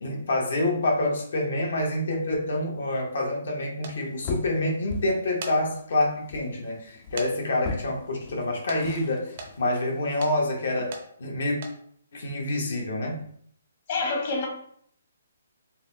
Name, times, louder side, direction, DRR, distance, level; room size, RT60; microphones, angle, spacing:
voice 1, 0.0-11.6 12.1-13.2, left 1 dB, 65° left, -1 dB, 1.0 m, -27 dB
sound 1, 3.8-4.0 5.2-5.6 6.1-6.2 7.2-7.3 7.6-7.7 8.7-8.8 9.4-9.5 10.2-10.4 10.9-11.1 11.5-11.8, right 4 dB, 40° right, 0.5 m, -37 dB
sound 2, 3.9-11.0, left 3 dB, 25° left, 0.4 m, -40 dB
voice 2, 13.9-14.5, left 3 dB, 40° left, 1 dB, 1.0 m, -27 dB
4.0 x 2.1 x 2.7 m, 0.63 s
hypercardioid pair, 165°, 0 cm